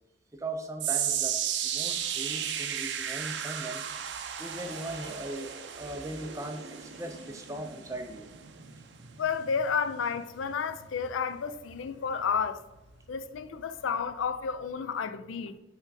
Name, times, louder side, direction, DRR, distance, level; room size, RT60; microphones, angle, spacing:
voice 1, 0.4-1.4 1.6-3.8 4.4-8.3, right 1 dB, 15° right, 0.5 m, -39 dB
sound 1, 0.8-13.1 13.4-13.8 14.4-14.5, right 9 dB, 60° right, 0.5 m, -35 dB
sound 2, 1.9-7.7, left 1 dB, 15° left, 1.5 m, -56 dB
voice 2, 9.2-12.6 13.1-15.6, left 6 dB, 80° left, 0.4 m, -31 dB
5.7 x 3.6 x 4.7 m
head